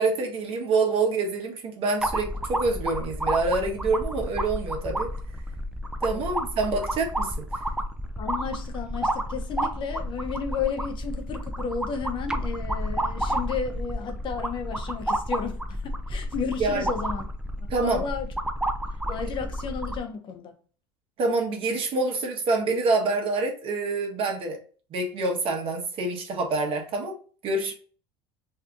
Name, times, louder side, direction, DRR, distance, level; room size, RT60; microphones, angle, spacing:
voice 1, 0.0-5.1 6.0-7.4 16.6-16.9 17.7-18.0 21.2-24.6 24.9-27.1 27.4-27.7, right 3 dB, 50° right, 1.1 m, -26 dB
sound 1, 2.0-20.0, right 1 dB, 5° right, 0.4 m, -31 dB
voice 2, 8.2-17.2 17.6-18.3 19.1-20.6, left 6 dB, 40° left, 0.7 m, -33 dB
2.7 x 2.4 x 3.6 m
supercardioid pair, 105°, 12 cm